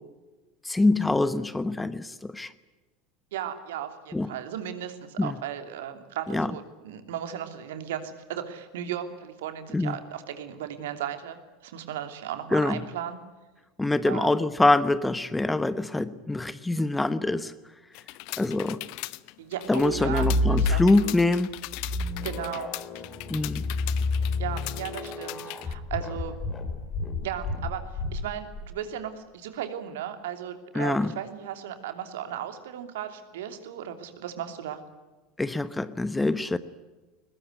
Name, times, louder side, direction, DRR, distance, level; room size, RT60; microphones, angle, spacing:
voice 1, 0.6-2.5 4.1-4.3 5.2-5.3 6.3-6.5 9.7-9.9 12.5-12.8 13.8-17.5 18.4-18.8 19.7-21.5 23.3-23.6 30.7-31.1 35.4-36.6, left 2 dB, 10° left, 15 dB, 1.1 m, -24 dB
voice 2, 3.3-13.2 14.1-14.5 19.4-21.2 22.2-22.7 24.2-26.3 27.2-27.8 28.1-34.8, right 10 dB, 65° right, 8 dB, 2.9 m, -36 dB
sound 1, 17.9-25.7, left 22 dB, 55° left, 0.8 m, -39 dB
sound 2, 19.8-21.2 21.7-28.7, left 2 dB, 30° left, 5.1 m, -29 dB
22.0 x 21.0 x 9.5 m, 1.2 s
figure-of-eight pair, 75°, 0 cm